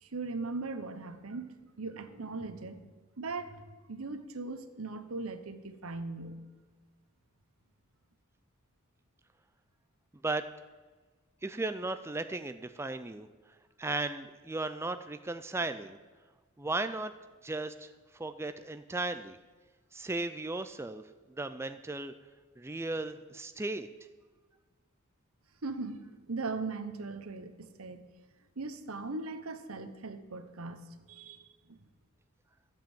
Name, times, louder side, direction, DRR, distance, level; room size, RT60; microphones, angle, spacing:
voice 1, 0.0-2.8 3.2-3.6 3.9-6.4 25.6-26.0 26.3-28.0 28.6-30.8 31.1-31.8, right 3 dB, 75° right, 9 dB, 1.0 m, -39 dB
voice 2, 11.4-13.3 13.8-16.0 16.6-17.1 17.4-17.9 18.1-19.4 19.9-21.0 21.4-22.1 22.6-23.9, right 2 dB, 10° right, 10 dB, 0.4 m, -35 dB
13.5 x 7.7 x 7.3 m, 1.4 s
head